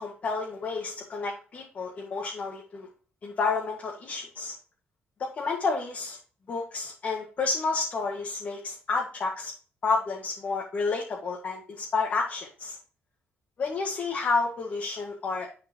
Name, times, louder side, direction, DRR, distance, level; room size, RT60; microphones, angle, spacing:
voice 1, 0.0-2.9 3.2-4.5 5.2-6.2 6.5-9.5 9.8-12.8 13.6-15.5, left 4 dB, 40° left, -1 dB, 1.8 m, -30 dB
11.0 x 5.0 x 3.0 m, 0.39 s
cardioid pair, 145°, 4 cm